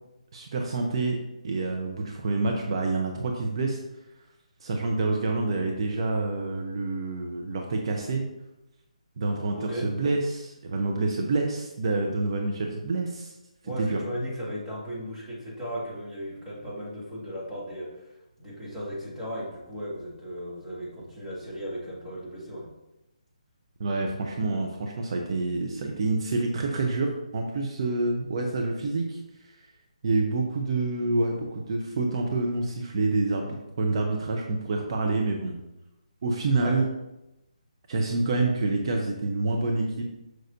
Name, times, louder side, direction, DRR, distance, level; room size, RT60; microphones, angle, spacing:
voice 1, 0.3-1.2 1.4-3.8 4.6-8.3 9.2-13.3 13.8-14.0 23.8-29.2 29.4-29.5 30.0-35.6 36.2-36.9 37.9-40.0, right 3 dB, 45° right, 1 dB, 0.8 m, -27 dB
voice 2, 9.6-9.9 13.6-22.7 36.5-36.8, equal, 10° right, -7 dB, 1.8 m, -36 dB
6.3 x 6.3 x 2.7 m, 0.93 s
figure-of-eight pair, 145°, 4 cm